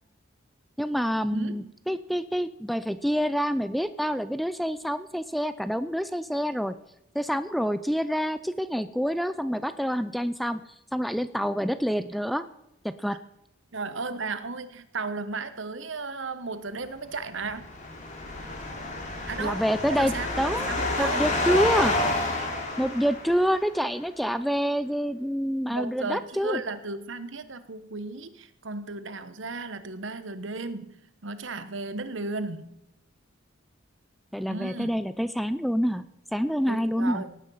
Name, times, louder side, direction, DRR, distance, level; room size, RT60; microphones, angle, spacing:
voice 1, 0.8-6.7 7.1-10.6 10.9-12.4 12.8-13.2 19.4-20.7 21.0-22.0 22.8-26.6 34.3-36.0 36.3-37.2, equal, ahead, 13 dB, 0.4 m, -27 dB
voice 2, 1.3-1.7 13.7-17.7 19.3-20.3 20.7-21.3 25.7-31.0 31.2-32.7 34.5-34.9 36.7-37.4, right 3 dB, 70° right, 12 dB, 1.1 m, -35 dB
sound 1, 17.3-23.7, left 2 dB, 35° left, 3.2 m, -29 dB
17.5 x 9.7 x 5.6 m, 0.86 s
head